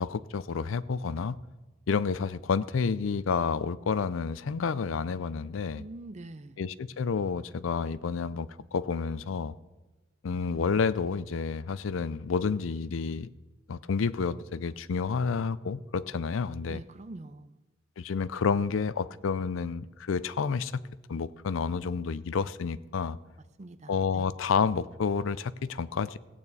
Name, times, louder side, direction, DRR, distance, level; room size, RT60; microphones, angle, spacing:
voice 1, 0.0-1.4 1.9-5.8 6.6-9.6 10.2-13.3 13.7-16.8 18.0-20.7 21.1-23.2 23.9-26.2, left 5 dB, 75° left, 17 dB, 0.4 m, -30 dB
voice 2, 5.7-6.6 16.7-17.5 23.6-24.3, right 2 dB, 35° right, 13 dB, 0.5 m, -44 dB
16.5 x 8.8 x 4.1 m, 1.2 s
head